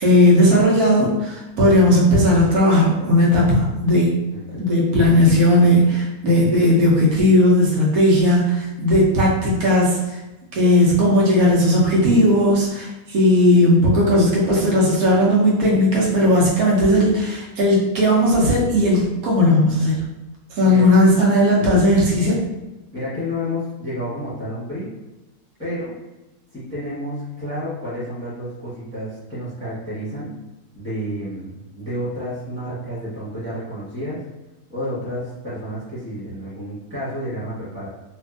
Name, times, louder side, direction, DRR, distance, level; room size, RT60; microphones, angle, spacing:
voice 1, 0.0-4.2 4.5-10.2 10.5-20.0 20.5-22.4, left 1 dB, 70° right, -4 dB, 1.2 m, -16 dB
voice 2, 4.3-4.7 20.7-20.8 21.6-21.9 22.9-24.9 25.6-25.9 26.5-30.3 30.7-34.2 34.7-37.9, equal, 10° left, -11 dB, 1.0 m, -30 dB
2.9 x 2.6 x 2.4 m, 1.1 s
omnidirectional pair, 1.7 m